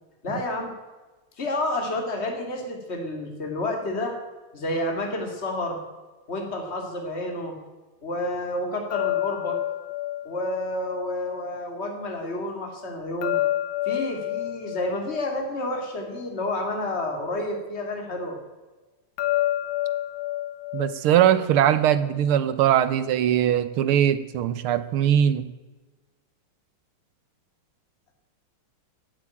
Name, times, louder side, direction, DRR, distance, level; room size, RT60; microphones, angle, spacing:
voice 1, 0.2-0.7 1.4-4.2 4.5-5.8 6.3-7.6 8.0-9.6 10.2-13.4 13.8-18.4, left 1 dB, 30° left, 2 dB, 2.8 m, -30 dB
sound 1, 8.9-12.0 13.2-16.7 19.2-22.3, left 14 dB, 70° left, 1.7 m, -30 dB
voice 2, 20.7-25.5, right 10 dB, 80° right, 13 dB, 1.8 m, -21 dB
15.5 x 8.6 x 8.7 m, 1.2 s
omnidirectional pair, 2.4 m